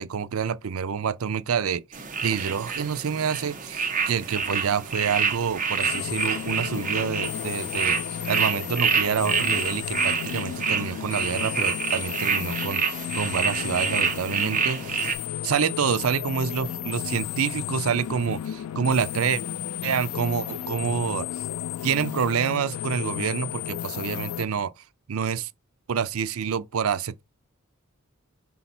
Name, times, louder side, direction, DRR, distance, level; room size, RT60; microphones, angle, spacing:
voice 1, 0.0-8.0 8.3-15.2 15.4-19.4 19.8-21.3 21.8-24.7 25.1-25.5 25.9-27.2, right 7 dB, 80° right, 0.5 m, -27 dB
sound 1, 1.9-15.1, right 6 dB, 40° right, 1.2 m, -28 dB
sound 2, 5.8-24.4, left 11 dB, 90° left, 0.3 m, -33 dB
sound 3, 16.5-17.5 19.1-20.1, left 3 dB, 30° left, 2.3 m, -47 dB
5.6 x 4.1 x 4.3 m
head